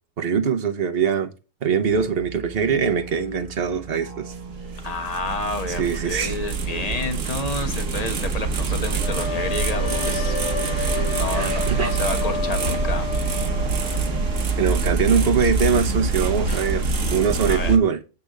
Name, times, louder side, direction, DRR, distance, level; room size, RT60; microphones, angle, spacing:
voice 1, 0.2-1.3 1.6-4.3 5.7-6.4 11.3-11.9 14.6-18.0, right 6 dB, 50° right, 1.1 m, -22 dB
Musical instrument, 1.8-16.8, right 4 dB, 30° right, 0.9 m, -39 dB
sound 1, 4.3-17.8, right 4 dB, 75° right, 1.4 m, -25 dB
voice 2, 4.8-10.4 11.0-13.1 16.5-16.6 17.5-17.8, left 3 dB, 30° left, 1.3 m, -30 dB
sound 2, 9.0-14.9, left 5 dB, 55° left, 1.5 m, -31 dB
8.3 x 3.5 x 6.5 m
omnidirectional pair, 1.3 m